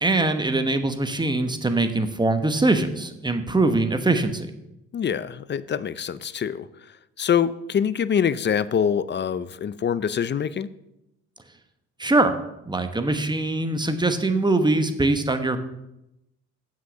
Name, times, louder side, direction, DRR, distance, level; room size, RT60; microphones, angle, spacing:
voice 1, 0.0-4.5 12.0-12.3 12.7-15.6, right 2 dB, 15° right, 8 dB, 1.1 m, -22 dB
voice 2, 4.9-6.7 7.2-10.7, left 8 dB, 35° left, 16 dB, 0.5 m, -24 dB
7.5 x 6.3 x 7.0 m, 0.85 s
cardioid pair, 90°, 30 cm